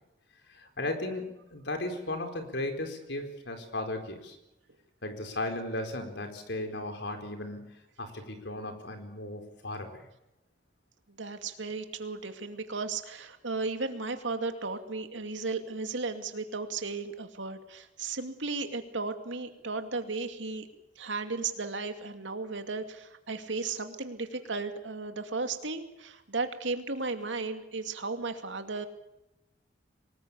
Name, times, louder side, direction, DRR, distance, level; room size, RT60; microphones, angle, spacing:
voice 1, 0.5-4.4 5.0-10.1, left 2 dB, 70° left, 6 dB, 4.4 m, -36 dB
voice 2, 11.2-20.7 21.0-28.9, right 3 dB, 90° right, 7 dB, 2.5 m, -35 dB
24.0 x 20.0 x 8.4 m, 0.90 s
head